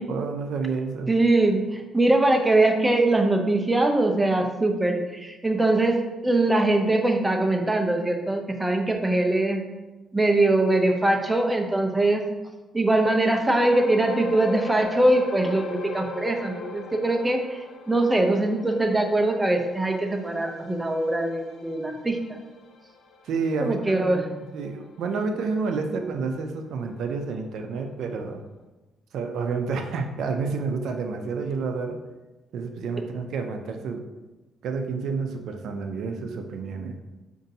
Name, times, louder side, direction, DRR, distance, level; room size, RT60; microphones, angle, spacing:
voice 1, 0.0-1.1 23.2-28.4 29.1-32.0 32.5-34.1 34.6-37.0, right 4 dB, 75° right, 5 dB, 0.4 m, -29 dB
voice 2, 1.1-9.6 10.1-12.2 12.7-22.4 23.6-24.3, right 2 dB, 15° right, 4 dB, 0.5 m, -22 dB
sound 1, 13.5-26.2 26.5-26.7 27.3-27.4, left 4 dB, 70° left, 0.4 m, -40 dB
5.1 x 2.6 x 2.7 m, 1.1 s
cardioid pair, 90°, 0 cm